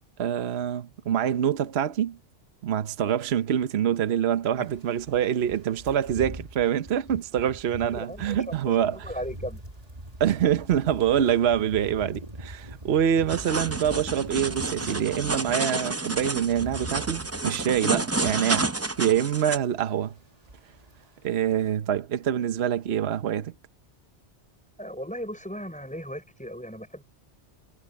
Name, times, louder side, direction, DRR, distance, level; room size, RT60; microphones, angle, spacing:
voice 1, 0.2-2.2 2.6-9.0 10.2-18.7 19.0-20.1 21.2-23.5, right 9 dB, 65° right, 1.0 m, -25 dB
Windy Forest sounds, 4.6-15.6 15.9-19.3 19.6-19.9 20.2-21.0 21.2-21.5, right 1 dB, 30° right, 2.3 m, -42 dB
voice 2, 7.9-9.6 24.8-27.0, equal, 5° left, 6.1 m, -37 dB
sound 1, 13.3-19.6, right 2 dB, 15° right, 0.6 m, -30 dB
omnidirectional pair, 1.2 m